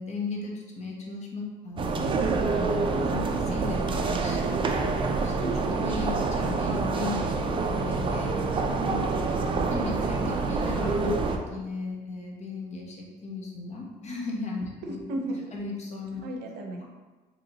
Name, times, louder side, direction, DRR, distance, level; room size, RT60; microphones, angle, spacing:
voice 1, 0.0-2.2 3.5-8.7 9.7-15.0 15.5-16.3 16.8-16.9, left 3 dB, 40° left, -2 dB, 0.9 m, -36 dB
sound 1, 1.8-11.4, right 4 dB, 30° right, 0.4 m, -27 dB
voice 2, 2.9-3.5 8.7-9.0 14.8-15.4 16.2-16.9, equal, 90° right, 2 dB, 0.6 m, -35 dB
3.8 x 3.0 x 2.9 m, 1.3 s
cardioid pair, 110°, 17 cm